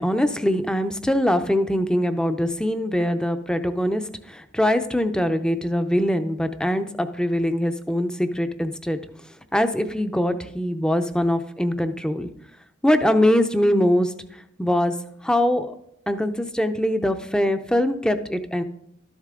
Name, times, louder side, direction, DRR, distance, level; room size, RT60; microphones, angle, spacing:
voice 1, 0.0-4.0 4.3-9.0 9.5-12.3 12.8-14.1 14.6-14.9 15.2-15.7 16.1-18.6, left 1 dB, 5° left, 9 dB, 0.6 m, -22 dB
13.0 x 11.0 x 3.7 m, 0.77 s
head